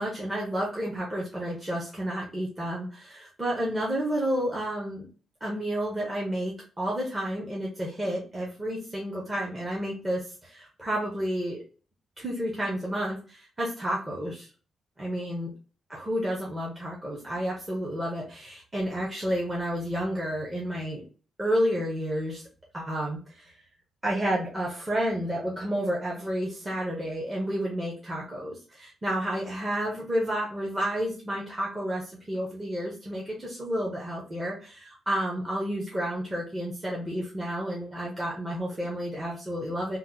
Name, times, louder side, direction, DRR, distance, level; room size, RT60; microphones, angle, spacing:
voice 1, 0.0-5.1 5.4-11.6 12.2-14.5 15.0-15.5 15.9-21.0 21.4-22.4 22.7-23.5 24.0-40.0, equal, 15° right, -3 dB, 0.6 m, -31 dB
2.8 x 2.0 x 3.6 m, 0.37 s
wide cardioid pair, 165°, 0 cm